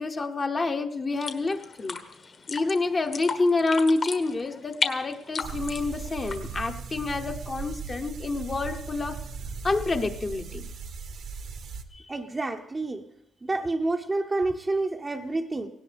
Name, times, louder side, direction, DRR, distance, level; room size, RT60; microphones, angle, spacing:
voice 1, 0.0-2.0 2.5-9.2 9.6-10.6 11.9-12.1, left 3 dB, 30° left, 4 dB, 0.9 m, -28 dB
sound 1, 1.1-6.7, left 5 dB, 50° left, 1.4 m, -34 dB
sound 2, 5.4-11.8, right 5 dB, 70° right, 1.2 m, -38 dB
voice 2, 12.1-13.0 13.4-15.7, right 2 dB, 25° right, 3 dB, 0.7 m, -28 dB
17.5 x 17.0 x 3.4 m, 0.82 s
cardioid pair, 90°, 0 cm